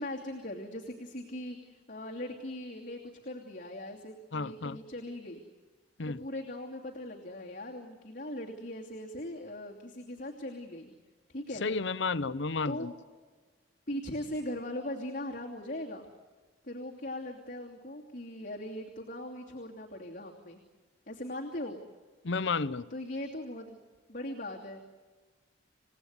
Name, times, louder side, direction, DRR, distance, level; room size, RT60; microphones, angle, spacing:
voice 1, 0.0-5.4 6.0-10.9 11.3-11.7 12.6-12.9 13.9-16.1 16.6-20.6 21.1-21.8 22.9-23.8 24.1-24.8, left 1 dB, 45° left, -1 dB, 2.8 m, -40 dB
voice 2, 4.3-4.8 6.0-6.2 11.6-12.9 22.2-22.9, left 4 dB, 70° left, 15 dB, 0.7 m, -32 dB
28.5 x 17.5 x 9.7 m, 1.4 s
head